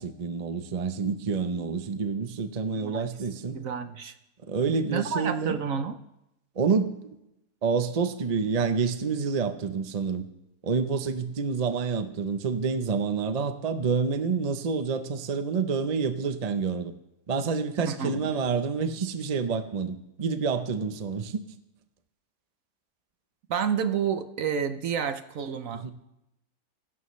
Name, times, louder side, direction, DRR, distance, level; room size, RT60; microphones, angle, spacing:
voice 1, 0.0-3.6 4.5-5.6 6.6-6.9 7.6-10.3 10.6-16.9 17.3-21.4 25.7-25.9, right 5 dB, 40° right, 8 dB, 0.6 m, -28 dB
voice 2, 2.7-3.1 3.5-4.1 4.9-6.0 17.9-18.3 23.5-25.9, right 7 dB, 60° right, 9 dB, 1.0 m, -30 dB
25.0 x 12.0 x 3.2 m, 0.88 s
omnidirectional pair, 1.8 m